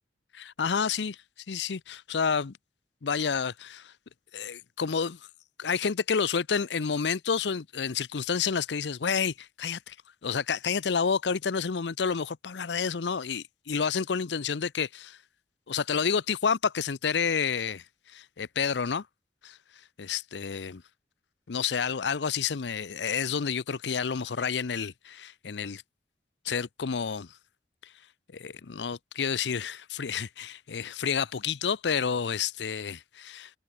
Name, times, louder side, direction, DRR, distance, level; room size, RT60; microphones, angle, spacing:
voice 1, 0.3-1.2 1.5-2.6 3.0-3.9 4.3-5.2 5.6-10.0 10.2-15.2 15.7-19.1 19.4-19.6 20.0-20.8 21.5-25.8 26.4-27.3 27.8-27.9 28.3-33.5, left 6 dB, 80° left, 0.6 m, -29 dB
head